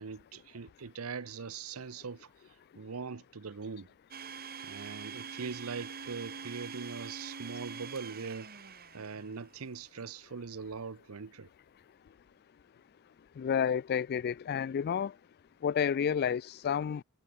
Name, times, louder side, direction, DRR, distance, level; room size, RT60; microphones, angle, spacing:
voice 1, 0.0-2.3 2.8-3.9 4.6-8.5 8.9-11.5, right 5 dB, 75° right, 0.7 m, -41 dB
Domestic sounds home sounds, 4.1-9.6, right 6 dB, 45° right, 1.7 m, -44 dB
voice 2, 13.4-15.1 15.6-17.0, left 7 dB, 45° left, 0.3 m, -30 dB
head